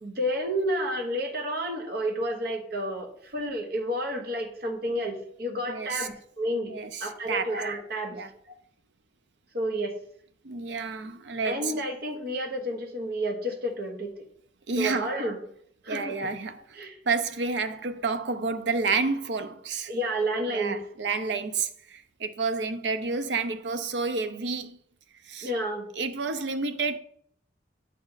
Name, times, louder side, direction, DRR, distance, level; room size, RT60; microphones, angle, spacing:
voice 1, 0.0-8.2 9.5-10.0 11.4-14.2 14.8-15.4 15.8-16.3 16.7-17.0 19.9-20.8 25.4-25.9, equal, 60° right, 1.1 m, -30 dB
voice 2, 5.7-6.1 6.7-7.5 8.1-8.3 10.4-11.7 14.7-15.1 15.9-16.6 17.1-19.9 20.4-24.8 25.2-25.5 26.0-27.0, right 4 dB, 80° right, 0.6 m, -30 dB
8.2 x 4.1 x 4.0 m
head